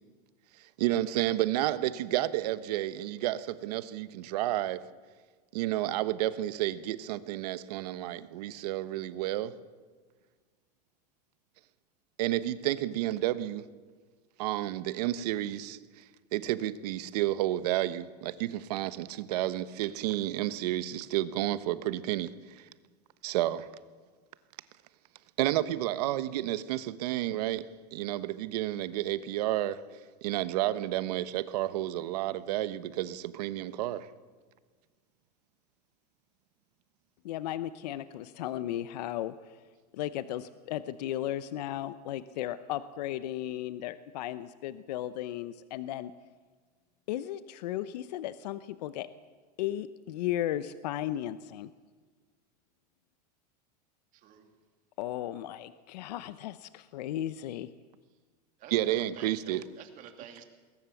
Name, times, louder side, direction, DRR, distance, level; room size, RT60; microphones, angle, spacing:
voice 1, 0.8-4.8 5.5-9.5 12.2-13.6 14.4-16.0 16.3-22.7 23.2-23.7 25.4-27.6 27.9-29.8 30.2-34.1 58.7-59.6, right 14 dB, 70° right, 1.1 m, -31 dB
voice 2, 37.2-39.6 39.9-46.1 47.1-49.1 49.6-51.7 55.0-57.7, left 12 dB, 80° left, 0.8 m, -35 dB
voice 3, 54.1-54.5 58.6-60.4, right 9 dB, 40° right, 2.9 m, -50 dB
21.0 x 19.0 x 7.1 m
supercardioid pair, 145°, 21 cm